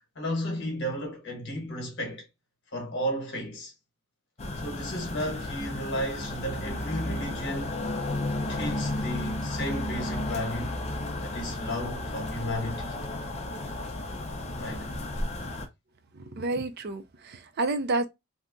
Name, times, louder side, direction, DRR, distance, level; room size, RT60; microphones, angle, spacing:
voice 1, 0.1-2.3 2.7-3.7 4.6-7.8 8.5-10.8 11.2-12.9 14.6-14.9, equal, 55° left, 1.1 m, -33 dB
sound 1, 4.4-15.7, left 1 dB, 30° left, 0.5 m, -33 dB
voice 2, 16.1-18.1, right 2 dB, 50° right, 0.5 m, -30 dB
2.8 x 2.3 x 3.6 m
head